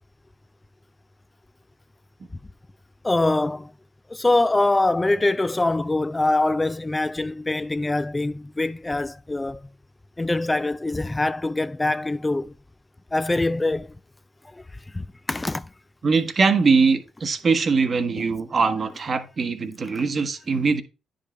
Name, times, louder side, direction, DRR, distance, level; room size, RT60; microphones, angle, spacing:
voice 1, 3.0-3.7 4.1-9.6 10.2-12.5 13.1-14.0 14.5-15.7 18.2-18.3 20.0-20.1, left 2 dB, 20° left, 0.3 m, -24 dB
voice 2, 16.0-20.8, right 4 dB, 45° right, 1.1 m, -22 dB
9.8 x 5.2 x 3.2 m
supercardioid pair, 60°, 0 cm